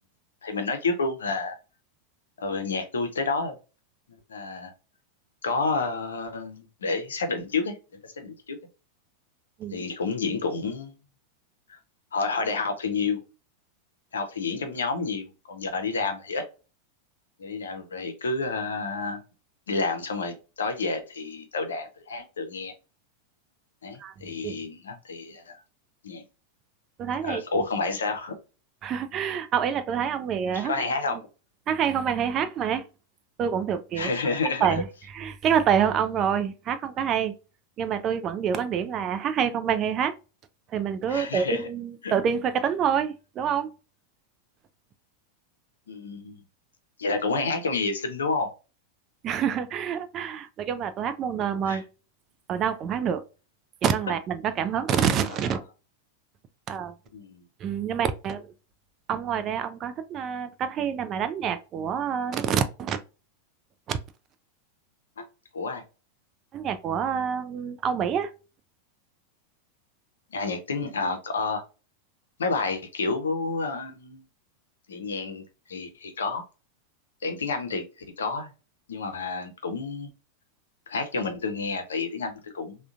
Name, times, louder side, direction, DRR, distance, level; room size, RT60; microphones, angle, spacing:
voice 1, 0.4-1.6 2.4-3.6 4.3-4.7 5.4-7.8 8.0-8.6 9.7-10.9 11.7-11.8 12.1-13.2 14.1-16.4 17.4-19.2 19.7-22.7 23.8-25.6 26.0-26.2 27.2-28.4 30.5-31.2 34.0-34.8 41.1-41.7 42.0-42.1 45.9-46.4 47.0-48.5 51.7-51.8 57.1-57.4 65.2-65.3 65.5-65.8 70.3-71.6 72.4-74.2 74.9-75.4 75.7-76.4 77.2-77.8 78.2-78.5 78.9-80.1 80.9-82.8, left 4 dB, 70° left, 0.6 m, -29 dB
voice 2, 27.0-27.6 28.8-30.7 31.7-32.8 33.4-34.1 34.6-37.3 37.8-40.1 40.7-43.7 49.2-51.8 52.5-53.2 53.8-55.6 56.7-56.9 57.6-58.5 59.1-63.0 63.9-64.0 66.5-68.3, right 8 dB, 30° right, 0.4 m, -27 dB
3.6 x 2.2 x 2.4 m
figure-of-eight pair, 90°, 0 cm